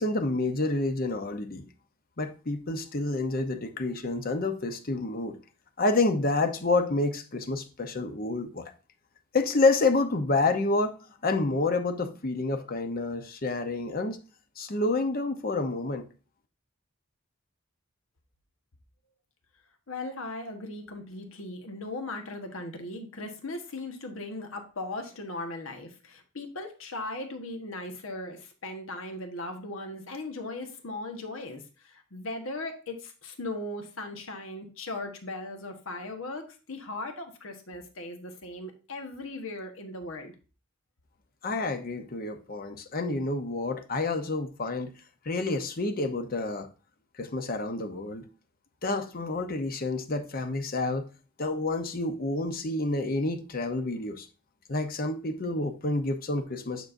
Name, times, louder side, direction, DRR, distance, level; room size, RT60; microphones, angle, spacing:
voice 1, 0.0-1.7 2.2-5.4 5.8-8.7 9.3-11.0 11.2-14.2 14.6-16.1 41.4-44.9 45.2-46.7 47.2-48.2 48.8-51.0 51.4-54.3 54.7-56.9, left 2 dB, 45° left, 0.8 m, -28 dB
voice 2, 19.9-40.3, left 2 dB, 75° left, 1.3 m, -38 dB
9.4 x 6.1 x 2.6 m
head